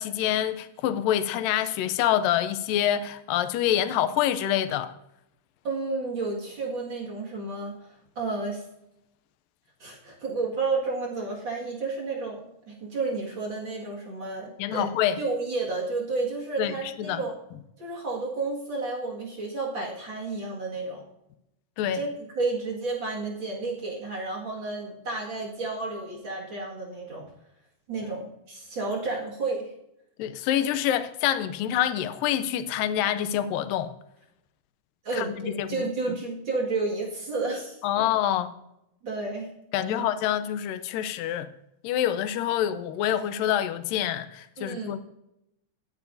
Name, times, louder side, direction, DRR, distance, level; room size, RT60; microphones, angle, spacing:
voice 1, 0.0-4.9 14.6-15.2 16.6-17.2 21.8-22.0 28.0-28.1 30.2-33.9 35.1-36.2 37.8-38.5 39.7-41.5 41.8-45.0, left 11 dB, 90° left, 2.4 m, -26 dB
voice 2, 5.6-7.7 8.2-8.6 9.8-14.9 15.2-17.3 17.8-21.0 21.9-27.3 27.9-29.7 35.0-37.8 39.0-39.5 39.8-40.0 44.6-45.0, right 3 dB, 40° right, 2.3 m, -31 dB
17.5 x 9.3 x 2.6 m
omnidirectional pair, 3.8 m